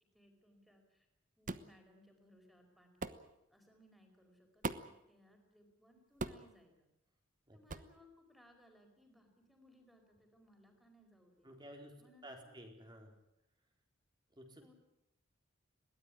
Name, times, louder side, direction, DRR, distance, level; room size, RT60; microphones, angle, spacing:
voice 1, 0.1-1.1 1.4-3.2 3.5-6.9 7.5-11.5 12.0-12.5 14.6-14.7, left 1 dB, ahead, 4 dB, 5.0 m, -66 dB
sound 1, 1.5-1.7 3.0-3.2 4.6-5.0 6.2-6.5 7.7-7.9, right 3 dB, 40° right, 1.1 m, -40 dB
voice 2, 11.4-12.0 12.2-13.1 14.3-14.7, equal, 20° right, 3 dB, 4.2 m, -53 dB
21.5 x 18.0 x 10.0 m, 0.83 s
head